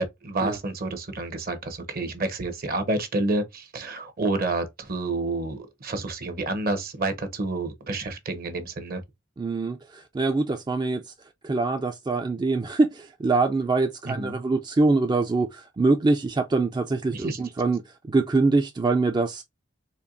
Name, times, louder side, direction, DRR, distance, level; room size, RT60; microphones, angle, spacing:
voice 1, 0.0-9.0 14.0-14.4 17.1-17.4, right 2 dB, 50° right, 0.9 m, -29 dB
voice 2, 9.4-11.1 11.4-17.8 18.1-19.4, right 3 dB, 25° right, 0.3 m, -24 dB
4.4 x 3.0 x 2.5 m
head